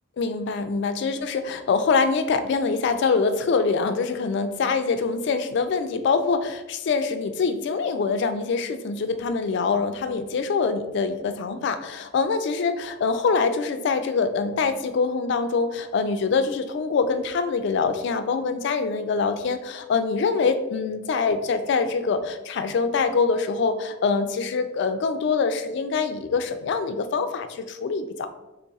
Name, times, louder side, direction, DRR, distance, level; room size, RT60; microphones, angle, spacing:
voice 1, 0.2-28.3, left 4 dB, 60° left, 9 dB, 0.3 m, -24 dB
3.2 x 2.3 x 3.9 m, 0.99 s
head